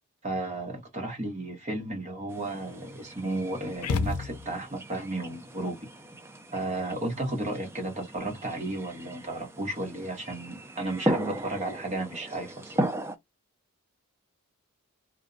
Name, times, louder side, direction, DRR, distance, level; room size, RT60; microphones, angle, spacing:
voice 1, 0.2-5.9 6.5-12.9, right 2 dB, 30° right, 1.0 m, -33 dB
sound 1, 2.3-13.2, right 1 dB, 10° right, 0.4 m, -36 dB
sound 2, 3.8-4.8, left 4 dB, 90° left, 0.5 m, -30 dB
2.5 x 2.1 x 2.4 m
head